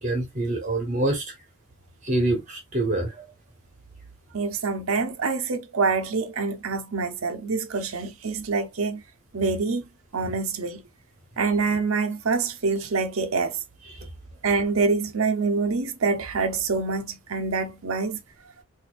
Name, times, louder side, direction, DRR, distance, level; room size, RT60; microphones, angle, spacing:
voice 1, 0.0-1.3 2.0-3.2 13.8-14.1, right 2 dB, 35° right, 1.0 m, -26 dB
voice 2, 4.3-9.0 9.3-9.8 10.1-10.8 11.4-13.6 14.4-18.2, right 4 dB, 75° right, 0.7 m, -26 dB
4.1 x 2.7 x 2.4 m
head